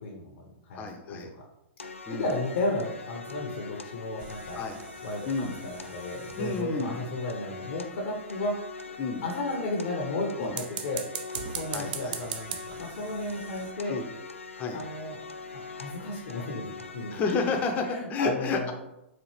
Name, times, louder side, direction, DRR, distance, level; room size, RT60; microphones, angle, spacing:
voice 1, 0.0-1.4 2.1-4.6 5.0-8.6 9.2-11.1 11.5-14.0 14.7-15.2 15.7-17.2 17.8-18.7, left 2 dB, 55° left, -1 dB, 0.7 m, -33 dB
voice 2, 0.7-1.3 2.1-2.3 4.5-4.8 5.3-5.5 6.4-7.0 9.0-9.2 10.4-10.6 11.7-12.2 13.9-14.1 14.6-14.8 17.1-18.7, left 4 dB, 25° left, 4 dB, 0.6 m, -30 dB
sound 1, 1.8-17.8, left 4 dB, 80° left, 0.3 m, -43 dB
sound 2, 4.2-7.0 10.4-13.7, right 8 dB, 45° right, 0.4 m, -40 dB
4.1 x 2.4 x 3.2 m, 0.90 s
figure-of-eight pair, 110°, 7 cm